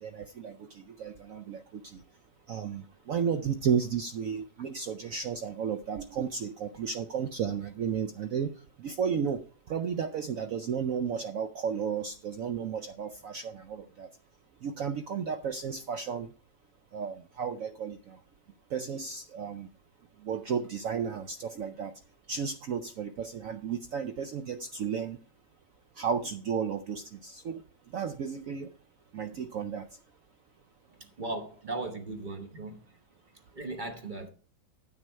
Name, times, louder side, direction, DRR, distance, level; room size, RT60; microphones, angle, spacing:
voice 1, 0.0-2.0 2.5-8.5 8.8-14.1 14.6-16.3 16.9-18.2 18.7-19.7 20.2-21.9 22.3-25.2 26.0-27.6 27.9-28.7 29.1-29.9, right 7 dB, 70° right, 0.8 m, -33 dB
voice 2, 31.2-32.8 33.5-34.3, right 2 dB, 35° right, 0.9 m, -37 dB
9.5 x 7.5 x 4.3 m
omnidirectional pair, 2.0 m